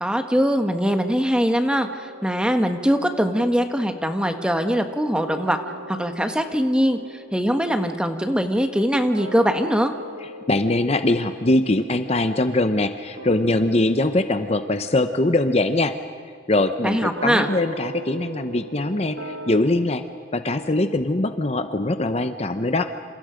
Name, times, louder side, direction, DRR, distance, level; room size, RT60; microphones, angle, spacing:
voice 1, 0.0-5.6 5.9-9.9 16.8-17.5, equal, 5° right, 6 dB, 1.4 m, -22 dB
sound 1, 1.7-4.9 5.2-19.6, right 2 dB, 80° right, 1.8 m, -41 dB
voice 2, 10.5-15.9 16.5-20.0 20.3-22.9, left 2 dB, 35° left, 9 dB, 0.8 m, -22 dB
28.5 x 28.0 x 5.2 m, 2.1 s
head